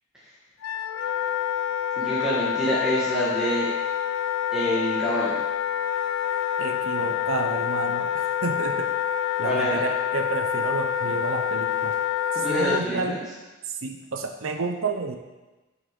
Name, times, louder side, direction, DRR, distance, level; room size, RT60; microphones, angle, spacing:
Wind instrument woodwind instrument, 0.6-12.8, left 9 dB, 85° left, 0.3 m, -27 dB
voice 1, 2.0-3.7 4.5-5.3 9.4-9.8 12.3-13.2, equal, 5° right, -9 dB, 1.4 m, -26 dB
voice 2, 6.6-8.9 9.4-12.0 12.3-13.2 13.6-15.2, right 4 dB, 85° right, 5 dB, 0.7 m, -30 dB
6.8 x 6.2 x 5.2 m, 1.1 s
head